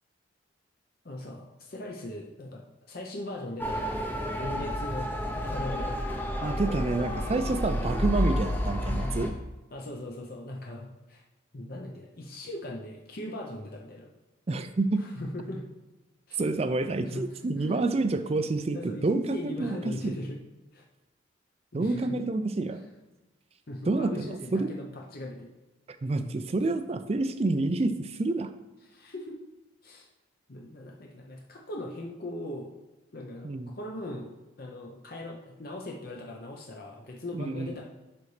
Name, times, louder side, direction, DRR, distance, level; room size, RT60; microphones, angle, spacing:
voice 1, 1.0-4.0 4.3-5.1 5.4-6.0 8.9-9.2 9.7-11.2 11.5-14.1 15.0-15.6 16.3-16.4 17.0-17.9 18.7-20.4 20.7-20.8 21.7-22.2 22.7-22.8 23.7-25.5 28.8-29.4 29.8-30.1 30.5-32.7 33.1-34.3 34.6-37.9, left 1 dB, 50° left, 0 dB, 0.7 m, -39 dB
Motor vehicle (road) / Siren, 3.6-9.3, equal, 10° left, 0.6 m, -30 dB
voice 2, 6.4-9.3 14.5-15.0 16.4-20.2 21.7-22.8 23.9-24.7 26.0-28.5 33.4-33.7 37.3-37.7, right 2 dB, 30° right, 10 dB, 0.4 m, -28 dB
11.5 x 4.1 x 3.3 m, 1.1 s
head